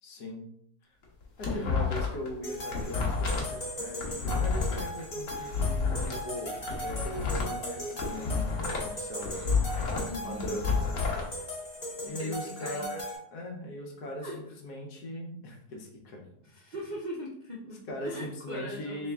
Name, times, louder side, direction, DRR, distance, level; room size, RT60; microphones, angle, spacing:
voice 1, 0.0-0.4 1.4-9.4 9.9-10.7 11.3-11.5 12.0-13.0 13.3-16.2 17.9-19.1, left 1 dB, 80° left, 1 dB, 1.4 m, -40 dB
sound 1, 1.0-2.3 2.6-6.2 6.6-8.9 9.2-11.2, left 4 dB, 60° left, 1.2 m, -30 dB
sound 2, 2.4-13.2, left 1 dB, 30° left, 0.8 m, -38 dB
voice 2, 10.1-10.6 12.0-12.9 14.2-14.4 16.4-19.0, equal, 55° right, -4 dB, 0.5 m, -40 dB
3.5 x 3.1 x 3.4 m, 0.71 s
omnidirectional pair, 1.7 m